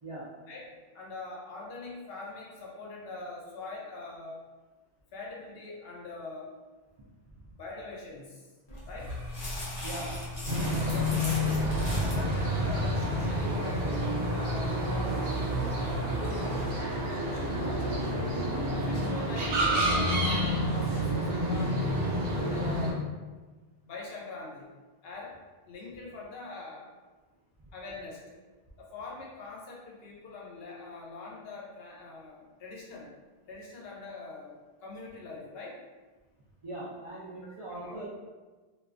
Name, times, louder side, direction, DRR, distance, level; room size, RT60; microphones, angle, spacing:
voice 1, 0.5-4.4 5.1-6.5 7.6-8.5 8.9-9.2 10.7-11.6 11.9-14.1 14.3-18.0 18.7-22.1 22.3-23.0 23.8-24.7 25.0-25.4 25.7-26.9 27.7-28.4 28.8-33.1 33.5-35.8 37.7-38.0, left 3 dB, 70° left, -3 dB, 0.8 m, -43 dB
sound 1, 8.7-12.3, left 1 dB, 30° left, 0.5 m, -39 dB
sound 2, 9.0-16.7, left 2 dB, 50° left, 1.2 m, -41 dB
voice 2, 9.8-10.2 36.6-38.1, right 2 dB, 55° right, -9 dB, 0.4 m, -40 dB
sound 3, 10.5-22.9, equal, 70° right, 0.9 m, -29 dB
2.3 x 2.2 x 2.4 m, 1.3 s
omnidirectional pair, 1.0 m